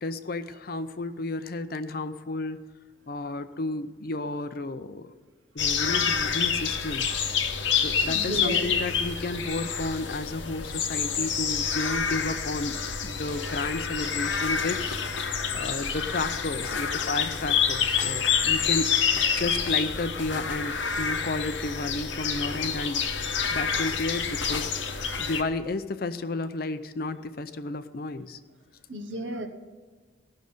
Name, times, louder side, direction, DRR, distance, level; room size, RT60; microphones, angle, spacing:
voice 1, 0.0-2.6 3.1-5.1 5.5-7.1 7.7-19.0 19.4-23.0 23.5-24.7 25.2-28.4, left 2 dB, 50° left, 11 dB, 0.5 m, -32 dB
sound 1, 5.6-25.4, left 6 dB, 85° left, 0.9 m, -28 dB
voice 2, 8.1-8.7 28.9-29.5, right 1 dB, 80° right, 7 dB, 1.0 m, -33 dB
16.5 x 6.3 x 5.4 m, 1.4 s
head